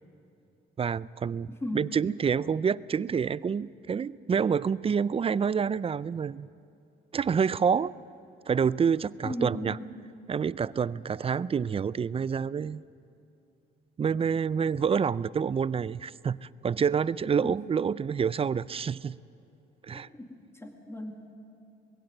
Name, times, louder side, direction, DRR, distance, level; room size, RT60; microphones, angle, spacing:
voice 1, 0.8-6.5 7.1-8.0 8.5-9.8 10.3-12.8 14.0-19.2 19.9-20.1, right 6 dB, 30° right, 20 dB, 0.4 m, -28 dB
voice 2, 1.6-2.0 9.2-9.9 17.4-17.6 19.9-21.2, left 1 dB, 15° left, 3 dB, 2.1 m, -37 dB
21.0 x 16.5 x 7.9 m, 2.6 s
cardioid pair, 90°, 20 cm